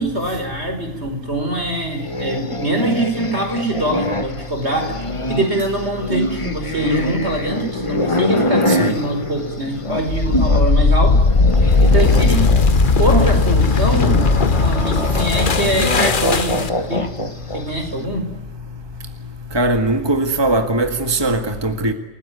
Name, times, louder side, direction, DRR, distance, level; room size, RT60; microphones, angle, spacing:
voice 1, 0.0-5.0 5.3-11.2 11.8-12.4 13.0-14.2 14.6-17.3 17.5-18.3, right 1 dB, 65° right, 5.6 m, -23 dB
sound 1, 2.0-10.7 11.0-17.8, left 1 dB, 25° left, 1.5 m, -25 dB
sound 2, 10.0-16.9, left 3 dB, 45° left, 1.3 m, -16 dB
voice 2, 19.5-21.9, right 2 dB, 20° right, 2.0 m, -19 dB
29.5 x 18.5 x 9.5 m
omnidirectional pair, 1.2 m